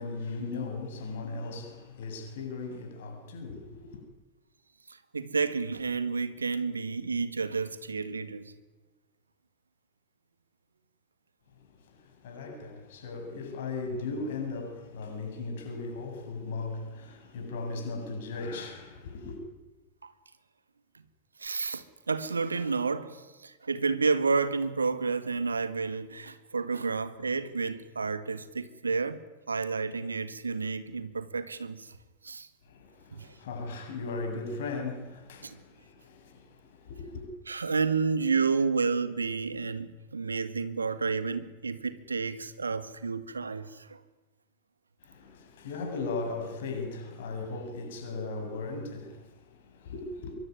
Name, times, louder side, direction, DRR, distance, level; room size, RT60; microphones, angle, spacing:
voice 1, 0.0-4.0 11.6-19.4 32.6-37.3 45.0-50.4, left 3 dB, 55° left, 7.9 m, -37 dB
voice 2, 4.9-8.5 20.0-20.1 21.4-32.0 32.2-32.5 33.1-33.3 35.4-35.6 37.5-44.0, right 4 dB, 75° right, 1.8 m, -30 dB
25.0 x 23.0 x 9.8 m
figure-of-eight pair, 90°, 0 cm